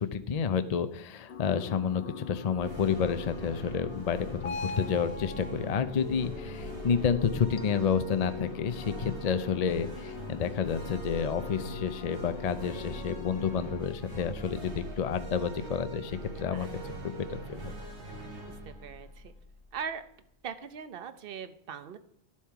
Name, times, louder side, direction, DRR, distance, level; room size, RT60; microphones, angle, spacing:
voice 1, 0.0-16.7 17.0-17.7, left 7 dB, 45° left, 11 dB, 0.6 m, -30 dB
sound 1, 1.3-13.8, left 5 dB, 70° left, 0.9 m, -43 dB
sound 2, 2.5-20.0, right 1 dB, 85° right, 2.4 m, -42 dB
voice 2, 18.5-19.3 19.7-20.0 20.4-22.0, right 7 dB, 60° right, 11 dB, 0.9 m, -40 dB
11.5 x 7.3 x 4.7 m, 0.74 s
omnidirectional pair, 1.1 m